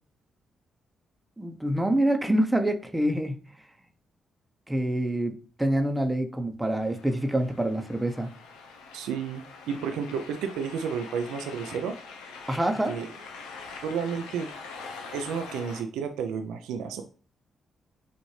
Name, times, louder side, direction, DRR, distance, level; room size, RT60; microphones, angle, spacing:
voice 1, 1.4-3.4 4.7-8.3 12.5-13.0, right 1 dB, 10° right, 0.8 m, -26 dB
sound 1, 6.8-15.8, left 4 dB, 85° left, 0.6 m, -44 dB
voice 2, 8.9-12.0 12.9-13.1 13.8-14.5 15.1-17.0, right 6 dB, 80° right, 0.5 m, -31 dB
6.3 x 2.6 x 3.2 m
hypercardioid pair, 50°, 0 cm